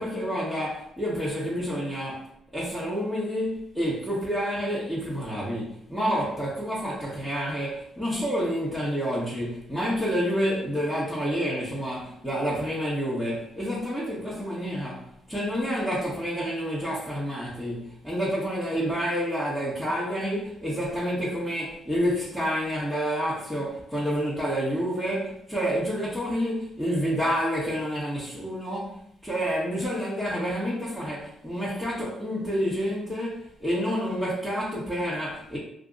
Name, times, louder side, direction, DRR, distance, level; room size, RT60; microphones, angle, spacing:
voice 1, 0.0-35.6, equal, 5° right, -10 dB, 1.0 m, -29 dB
2.7 x 2.5 x 3.8 m, 0.73 s
cardioid pair, 90°, 0 cm